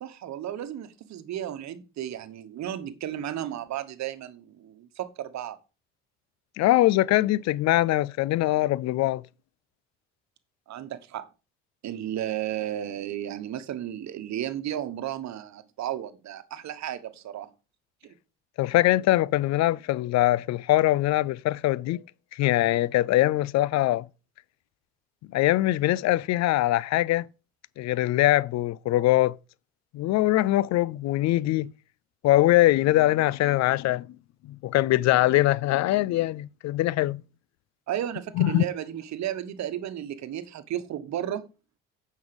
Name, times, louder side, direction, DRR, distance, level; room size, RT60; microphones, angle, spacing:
voice 1, 0.0-5.6 10.7-11.2 11.8-17.5 18.0-18.1 37.9-41.4, right 11 dB, 60° right, 1.2 m, -33 dB
voice 2, 6.6-9.2 18.6-22.0 22.3-24.1 25.3-27.2 27.8-29.4 29.9-31.7 32.2-34.1 34.6-37.2 38.4-38.6, left 16 dB, 60° left, 0.4 m, -22 dB
9.4 x 5.5 x 5.1 m
hypercardioid pair, 65°, 32 cm